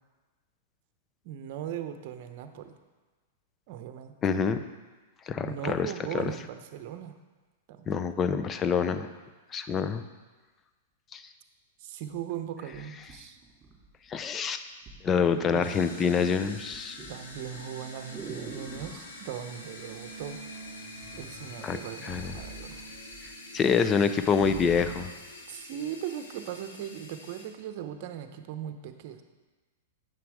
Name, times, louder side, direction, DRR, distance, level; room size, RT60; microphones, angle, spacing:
voice 1, 1.2-2.8 3.7-4.1 5.4-7.2 7.7-7.9 11.8-13.4 15.5-15.6 17.1-20.4 21.1-22.9 25.5-29.2, right 10 dB, 55° right, 8 dB, 0.8 m, -39 dB
voice 2, 4.2-4.6 5.3-6.3 7.9-9.1 9.5-10.0 11.1-11.2 14.1-14.6 15.0-17.0 21.6-22.3 23.5-25.1, left 6 dB, 25° left, 10 dB, 0.6 m, -26 dB
sound 1, 13.0-14.2 14.9-15.1 15.4-15.9 16.2-19.1 20.2-20.7 21.0-23.3 23.6-23.7 24.0-25.2 25.8-25.9, right 4 dB, 25° right, 2.8 m, -44 dB
sound 2, 15.1-25.1, right 3 dB, 65° left, 3.1 m, -49 dB
sound 3, 15.6-27.4, left 2 dB, 80° left, 1.5 m, -46 dB
9.1 x 6.0 x 4.8 m, 1.3 s
hypercardioid pair, 120°, 0 cm